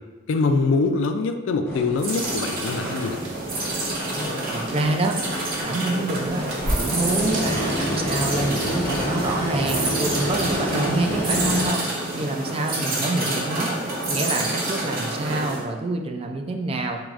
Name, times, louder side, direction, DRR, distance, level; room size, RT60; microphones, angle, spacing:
voice 1, 0.3-3.2, left 3 dB, 70° left, 8 dB, 0.3 m, -23 dB
sound 1, 1.6-2.9 3.3-4.9 5.3-5.4 6.1-11.7, equal, 10° left, 1.0 m, -28 dB
sound 2, 2.0-15.6, right 2 dB, 50° right, 0.8 m, -28 dB
Dog, 3.2-8.0, right 3 dB, 75° right, 0.6 m, -42 dB
voice 2, 4.5-5.2 5.6-6.5 6.8-11.8 12.1-13.7 14.1-17.0, right 2 dB, 30° right, 3 dB, 0.3 m, -26 dB
4.7 x 3.0 x 2.4 m, 1.3 s
head